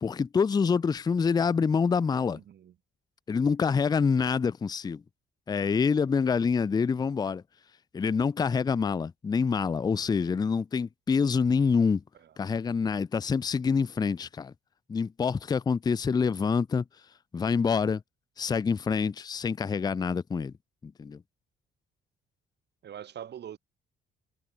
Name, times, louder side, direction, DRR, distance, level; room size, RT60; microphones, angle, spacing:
voice 1, 0.0-2.4 3.3-5.0 5.5-7.4 7.9-12.0 12.4-14.5 14.9-16.8 17.3-18.0 18.4-20.5 20.8-21.2, left 5 dB, 20° left, 0.4 m, -26 dB
voice 2, 2.3-2.7 22.8-23.6, right 10 dB, 60° right, 1.3 m, -42 dB
cardioid pair, 90°, 20 cm